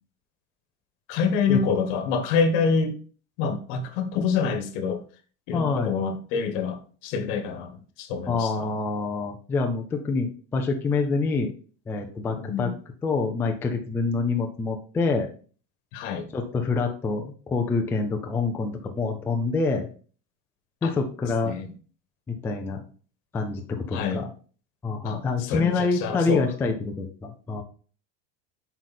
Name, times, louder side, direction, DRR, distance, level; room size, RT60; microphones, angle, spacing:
voice 1, 1.1-3.0 3.4-5.0 5.5-8.7 12.4-12.7 15.9-16.3 20.8-20.9 21.4-21.7 23.9-24.2 25.0-26.4, left 5 dB, 70° left, 1.5 m, -26 dB
voice 2, 5.5-5.9 8.3-11.5 11.9-12.7 13.0-15.3 16.3-19.9 20.8-21.6 22.3-22.8 23.3-24.3 24.8-27.6, left 4 dB, 5° left, 0.3 m, -26 dB
7.8 x 4.8 x 4.2 m
cardioid pair, 180°, 37 cm